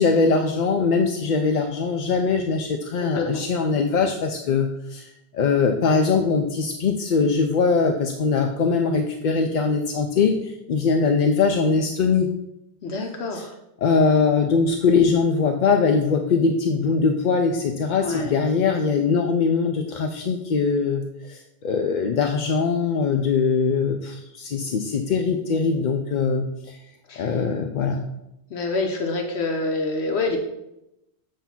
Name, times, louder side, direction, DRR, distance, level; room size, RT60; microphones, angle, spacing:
voice 1, 0.0-12.3 13.3-13.4 13.8-26.8 27.2-28.1, left 5 dB, 55° left, 4 dB, 0.6 m, -22 dB
voice 2, 3.0-3.4 12.8-13.5 18.0-18.4 27.1-27.3 28.5-30.4, left 3 dB, 75° left, 3 dB, 1.0 m, -26 dB
8.1 x 2.7 x 5.7 m, 0.88 s
omnidirectional pair, 1.1 m